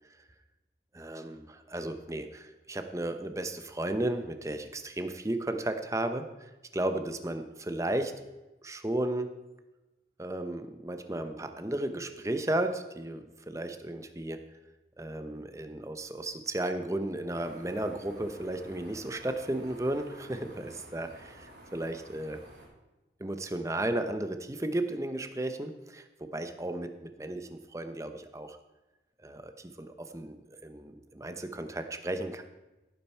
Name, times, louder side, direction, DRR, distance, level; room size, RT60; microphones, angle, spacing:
voice 1, 0.9-8.2 8.6-9.3 10.2-14.4 15.0-21.5 21.7-22.4 23.2-28.6 29.2-32.4, right 1 dB, 15° right, 8 dB, 0.8 m, -34 dB
sound 1, 17.3-22.7, right 1 dB, 75° right, 3.5 m, -51 dB
15.5 x 9.0 x 4.5 m, 1.1 s
head